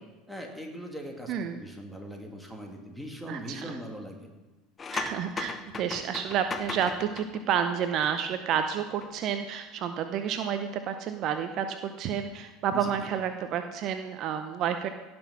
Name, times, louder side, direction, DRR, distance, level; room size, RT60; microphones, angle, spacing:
voice 1, 0.3-4.3 12.7-13.1, equal, ahead, 0 dB, 2.6 m, -40 dB
voice 2, 1.3-1.6 3.3-3.8 4.9-14.9, right 8 dB, 50° right, 8 dB, 0.7 m, -30 dB
sound 1, 4.8-8.6 8.9-9.1, left 5 dB, 30° left, 0.9 m, -38 dB
17.0 x 6.2 x 6.0 m, 1.2 s
hypercardioid pair, 75°, 0 cm